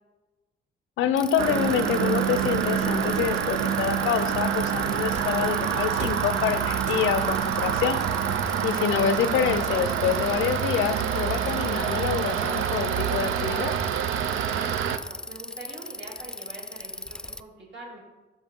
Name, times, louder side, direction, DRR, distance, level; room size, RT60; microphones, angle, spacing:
voice 1, 1.0-8.0 8.6-13.7, left 9 dB, 80° left, 11 dB, 0.6 m, -27 dB
Bicycle, 1.2-17.4, left 1 dB, 5° left, 0.3 m, -38 dB
sound 1, 1.4-15.0, right 9 dB, 85° right, 0.5 m, -27 dB
sound 2, 5.2-5.5 6.0-6.4 6.9-7.4 8.4-9.6 10.1-11.1, right 3 dB, 35° right, 1.1 m, -41 dB
voice 2, 14.5-18.0, right 2 dB, 65° right, -4 dB, 2.8 m, -44 dB
13.0 x 4.5 x 3.7 m, 1.2 s
cardioid pair, 90°, 20 cm